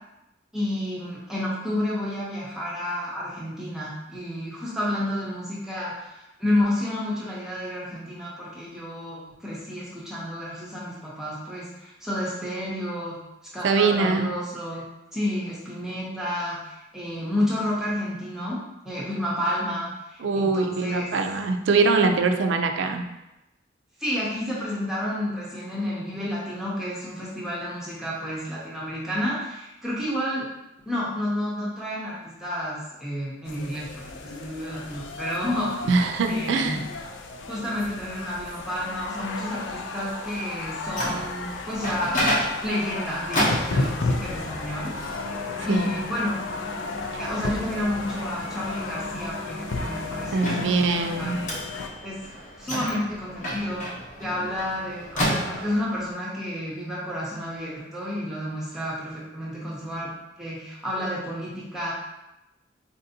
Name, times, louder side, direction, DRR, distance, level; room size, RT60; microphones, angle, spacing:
voice 1, 0.5-13.2 13.5-14.9 15.1-18.6 18.8-21.1 24.0-30.5 30.9-35.8 36.3-36.8 37.5-44.9 45.2-45.4 45.6-46.4 47.2-51.4 52.0-52.2 52.6-53.8 54.2-60.1 60.4-61.9, left 1 dB, 5° right, -7 dB, 0.6 m, -30 dB
voice 2, 13.6-14.3 20.2-23.0 35.9-36.8 45.7-46.0 50.3-51.4, right 4 dB, 75° right, 5 dB, 0.4 m, -23 dB
sound 1, 33.5-51.9, left 3 dB, 75° left, 0.4 m, -34 dB
Microwave oven, 40.6-56.0, equal, 40° left, 0.7 m, -32 dB
4.1 x 2.6 x 2.6 m, 0.95 s
head